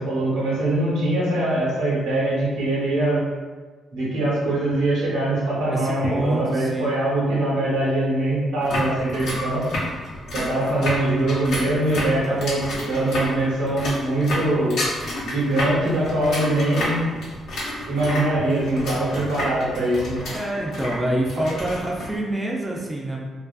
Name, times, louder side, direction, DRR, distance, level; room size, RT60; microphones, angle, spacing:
voice 1, 0.0-3.2 3.9-9.7 10.3-14.8 15.2-17.0 17.9-20.3, right 1 dB, 90° right, -6 dB, 0.9 m, -23 dB
voice 2, 5.7-6.9 19.0-19.2 20.3-23.2, right 1 dB, 15° right, -2 dB, 0.4 m, -26 dB
sound 1, 8.6-22.1, left 1 dB, 80° left, 0.8 m, -30 dB
2.5 x 2.4 x 2.3 m, 1.4 s
cardioid pair, 90°, 0 cm